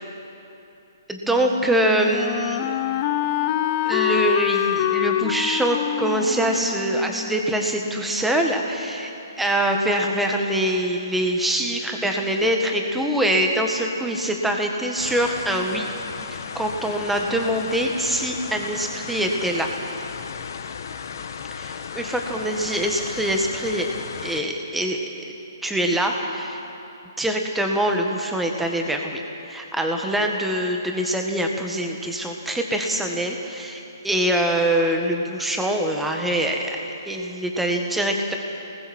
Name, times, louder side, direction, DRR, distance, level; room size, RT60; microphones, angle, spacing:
voice 1, 1.1-2.8 3.9-9.1 9.4-15.9 16.3-19.7 21.6-23.9 24.2-25.1 25.6-26.6 27.2-38.3, right 1 dB, 5° right, 2 dB, 1.8 m, -24 dB
Wind instrument woodwind instrument, 1.2-8.1, left 11 dB, 30° left, 0.8 m, -26 dB
sound 1, 15.0-24.4, left 6 dB, 60° left, 1.3 m, -35 dB
29.5 x 20.0 x 4.5 m, 2.9 s
hypercardioid pair, 145°, 2 cm